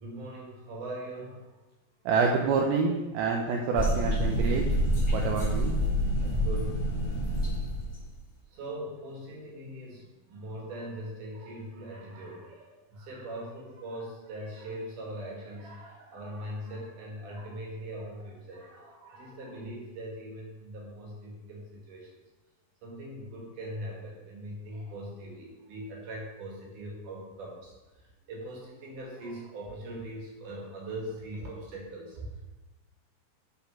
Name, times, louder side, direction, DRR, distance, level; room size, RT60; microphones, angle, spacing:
voice 1, 0.0-1.5 6.2-6.9 8.5-22.1 22.8-32.4, right 1 dB, 60° right, -2 dB, 3.5 m, -41 dB
voice 2, 2.1-4.8 5.1-5.8, right 5 dB, 80° right, 1 dB, 2.6 m, -27 dB
sound 1, 3.7-8.1, equal, 35° left, 0.4 m, -27 dB
8.4 x 5.1 x 5.7 m, 1.1 s
omnidirectional pair, 4.3 m